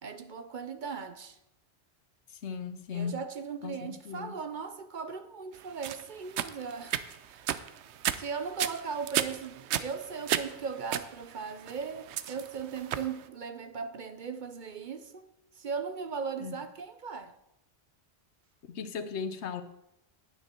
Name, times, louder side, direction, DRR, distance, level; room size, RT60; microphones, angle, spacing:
voice 1, 0.0-1.4 2.9-7.6 8.1-17.4, right 5 dB, 50° right, 0.7 m, -38 dB
voice 2, 2.3-3.2 3.6-4.3 16.4-16.5 18.7-19.6, left 6 dB, 85° left, 1.1 m, -37 dB
sound 1, 5.8-13.2, right 10 dB, 85° right, 0.9 m, -34 dB
9.7 x 9.1 x 4.4 m
omnidirectional pair, 1.1 m